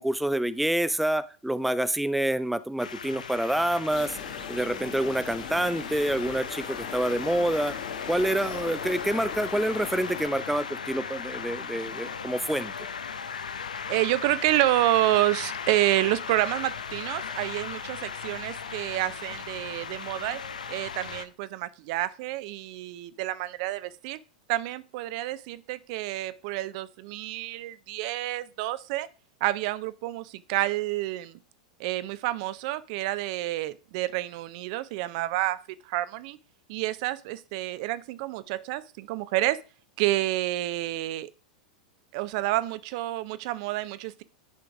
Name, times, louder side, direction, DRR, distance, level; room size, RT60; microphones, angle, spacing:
voice 1, 0.0-4.2 4.5-7.8 8.1-12.7, right 1 dB, ahead, 0.4 m, -27 dB
sound 1, 2.8-21.2, left 6 dB, 80° left, 0.7 m, -37 dB
sound 2, 3.9-10.3, left 7 dB, 55° left, 2.2 m, -41 dB
voice 2, 13.9-20.4 20.7-24.2 24.5-29.1 29.4-31.4 31.8-35.6 35.8-36.4 36.7-39.6 40.0-41.3 42.1-44.2, right 16 dB, 55° right, 0.5 m, -29 dB
10.0 x 3.8 x 4.7 m
hypercardioid pair, 95°, 4 cm